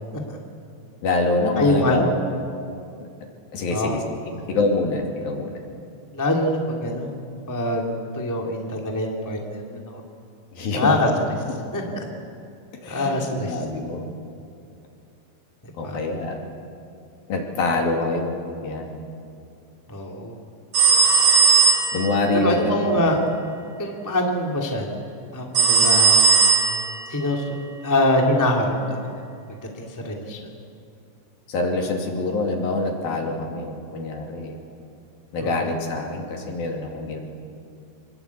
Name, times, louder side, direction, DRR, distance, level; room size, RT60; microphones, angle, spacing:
voice 1, 1.0-2.0 3.5-4.0 4.5-5.6 10.5-11.0 12.8-14.1 15.8-16.4 17.3-18.3 18.6-19.0 21.9-23.1 31.5-34.6 35.3-37.2, left 3 dB, 55° left, 2 dB, 4.1 m, -25 dB
voice 2, 1.6-2.1 3.7-4.0 4.4-4.5 6.1-7.1 7.5-10.0 10.8-11.1 11.7-11.8 12.9-13.6 15.8-16.0 19.9-20.4 22.4-23.2 23.8-24.9 25.3-26.2 27.1-27.6 27.8-29.1 29.8-30.4 35.4-35.7, left 1 dB, 5° left, 0 dB, 1.3 m, -24 dB
sound 1, 20.7-22.2 25.6-27.0, right 5 dB, 55° right, 6.8 m, -17 dB
26.0 x 21.5 x 8.5 m, 2.5 s
omnidirectional pair, 5.1 m